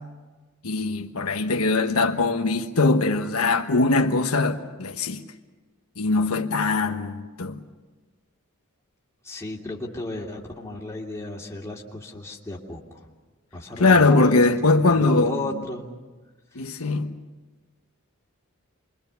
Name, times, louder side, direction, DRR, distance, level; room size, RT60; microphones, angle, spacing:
voice 1, 0.6-5.2 6.0-7.6 13.8-15.4 16.5-17.1, left 3 dB, 85° left, 1.3 m, -21 dB
voice 2, 9.2-13.1 13.5-15.9 16.5-16.9, left 2 dB, 15° left, 2.7 m, -34 dB
28.0 x 22.5 x 7.0 m
head